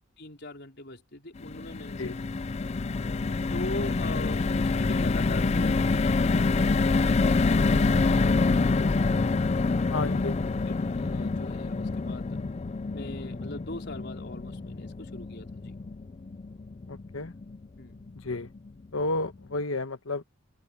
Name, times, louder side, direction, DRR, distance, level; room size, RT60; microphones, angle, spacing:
voice 1, 0.2-2.3 3.5-9.3 9.9-12.4 12.9-15.7 17.8-18.1, left 1 dB, 55° left, 4.7 m, -41 dB
sound 1, 1.4-17.7 18.1-18.2 18.5-18.7, left 3 dB, 30° left, 0.4 m, -27 dB
voice 2, 9.9-10.3 16.9-17.3 18.2-18.5 18.9-20.2, left 2 dB, 75° left, 1.3 m, -31 dB
head